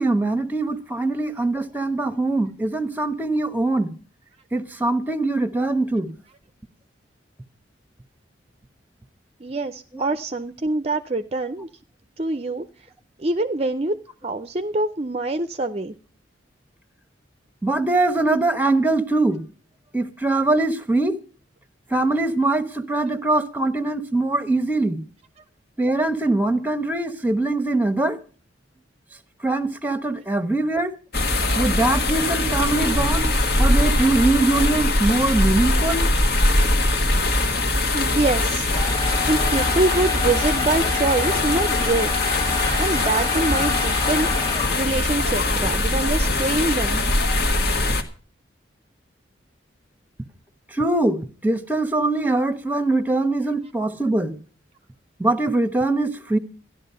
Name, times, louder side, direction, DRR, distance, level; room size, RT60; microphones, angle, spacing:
voice 1, 0.0-3.9 4.5-6.1 9.9-10.1 17.6-19.4 19.9-21.2 21.9-25.0 25.8-28.2 29.4-30.9 31.5-33.3 33.6-36.0 50.7-54.4 55.2-56.4, right 2 dB, 10° right, 1.0 m, -22 dB
voice 2, 9.4-11.7 12.2-12.6 13.2-13.9 14.2-15.9 37.9-38.7 39.3-42.1 42.8-44.3 44.8-47.0, right 2 dB, 30° right, 0.5 m, -24 dB
sound 1, 31.1-48.0, left 2 dB, 55° left, 1.6 m, -22 dB
sound 2, 38.7-45.1, left 4 dB, 20° left, 1.7 m, -28 dB
14.0 x 11.0 x 5.5 m
head